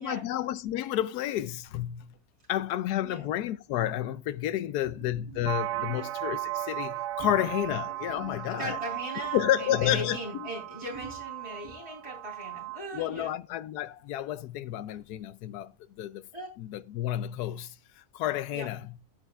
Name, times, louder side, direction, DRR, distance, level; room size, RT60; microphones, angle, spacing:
voice 1, 0.0-2.1 2.5-8.8 9.3-10.5 12.9-16.3 16.6-18.9, left 12 dB, 90° left, 1.2 m, -31 dB
voice 2, 5.0-5.5 5.9-6.0 7.2-7.3 8.1-13.3 16.3-16.5 18.5-18.7, right 1 dB, 20° right, 3.4 m, -39 dB
sound 1, 5.4-12.8, right 15 dB, 90° right, 1.2 m, -36 dB
13.5 x 7.7 x 2.3 m
omnidirectional pair, 1.6 m